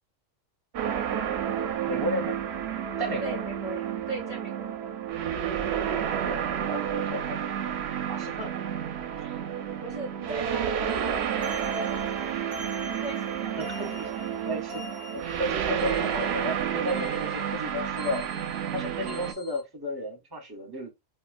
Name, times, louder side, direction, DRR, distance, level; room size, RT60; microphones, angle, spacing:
sound 1, 0.7-19.3, right 9 dB, 65° right, 0.7 m, -30 dB
voice 1, 1.9-2.4 3.0-3.4 6.2-7.8 8.1-8.5 13.6-14.1 14.4-14.9 15.4-18.3 18.7-20.9, left 1 dB, 25° right, 0.7 m, -33 dB
voice 2, 3.2-4.7 8.5-8.7 9.2-9.4 9.8-11.4 13.0-13.5 13.8-14.3, right 2 dB, 20° left, 1.4 m, -39 dB
sound 2, 10.9-19.6, right 1 dB, 35° left, 1.5 m, -44 dB
3.6 x 2.4 x 2.4 m
omnidirectional pair, 1.3 m